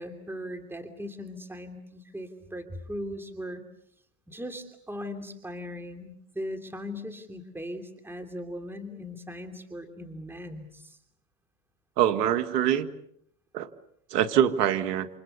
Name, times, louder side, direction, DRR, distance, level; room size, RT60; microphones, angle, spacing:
voice 1, 0.0-3.6 4.3-11.0, equal, 5° right, 6 dB, 3.0 m, -39 dB
voice 2, 12.0-12.9 13.5-13.7 14.1-15.1, right 10 dB, 85° right, 10 dB, 1.8 m, -24 dB
29.5 x 27.5 x 6.8 m, 0.71 s
supercardioid pair, 105°, 47 cm